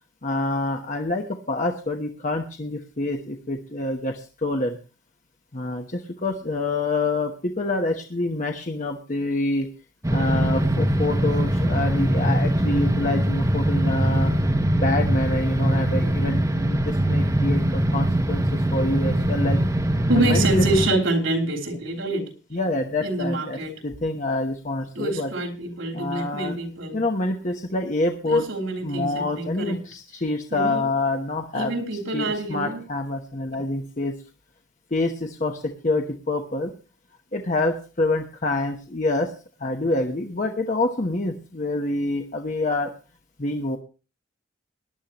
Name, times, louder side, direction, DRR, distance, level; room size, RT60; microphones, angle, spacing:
voice 1, 0.2-4.8 5.5-9.7 10.1-14.3 14.7-19.6 20.1-20.6 22.5-23.6 23.8-25.3 25.9-26.6 26.9-28.4 28.8-31.7 32.1-34.1 34.9-36.7 37.3-39.3 39.6-42.9 43.4-43.8, left 2 dB, 40° left, 3 dB, 1.0 m, -26 dB
sound 1, 10.0-20.9, right 1 dB, 15° right, 0.9 m, -22 dB
voice 2, 20.1-22.3 23.0-23.8 25.0-27.0 28.2-29.9 30.5-30.9 31.5-32.9, right 2 dB, 85° right, 2 dB, 3.5 m, -26 dB
18.5 x 11.0 x 3.0 m, 0.34 s
head